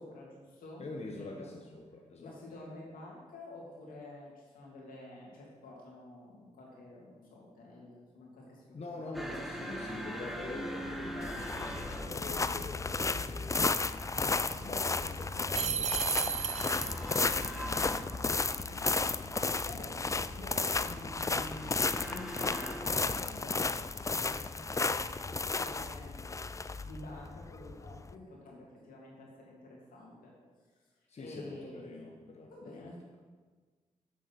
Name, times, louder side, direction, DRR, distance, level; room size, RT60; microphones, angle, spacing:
voice 1, 0.0-1.5 2.2-9.1 19.3-26.4 26.8-30.3 31.2-33.0, left 2 dB, 85° left, -3 dB, 2.6 m, -49 dB
voice 2, 0.8-2.4 8.7-17.7 31.1-33.2, left 2 dB, 50° left, 1 dB, 1.2 m, -46 dB
sound 1, 9.1-23.6, right 1 dB, ahead, 1.2 m, -44 dB
sound 2, 11.2-28.1, left 3 dB, 20° left, 0.4 m, -33 dB
sound 3, 15.5-17.2, right 7 dB, 50° right, 0.4 m, -33 dB
7.5 x 7.3 x 6.0 m, 1.4 s
cardioid pair, 60°, 14 cm